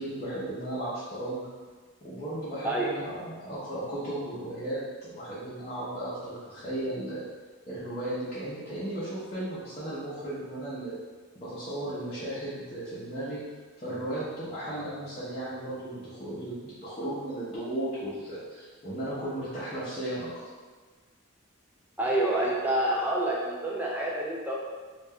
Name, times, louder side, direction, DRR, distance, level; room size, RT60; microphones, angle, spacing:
voice 1, 0.0-1.5 2.0-7.2 7.7-11.0 11.3-13.4 13.8-20.3, right 1 dB, 30° left, -13 dB, 0.6 m, -35 dB
voice 2, 2.6-3.0 22.0-24.6, right 1 dB, 10° right, -3 dB, 0.3 m, -27 dB
2.4 x 2.1 x 3.4 m, 1.4 s
head